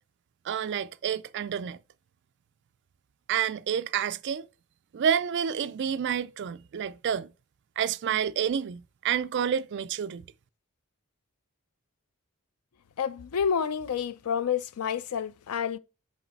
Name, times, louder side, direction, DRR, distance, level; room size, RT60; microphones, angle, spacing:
voice 1, 0.4-1.8 3.3-4.5 4.9-7.3 7.8-10.3, right 8 dB, 50° right, 0.3 m, -29 dB
voice 2, 13.0-15.8, left 7 dB, 80° left, 0.4 m, -29 dB
6.4 x 3.9 x 4.5 m
head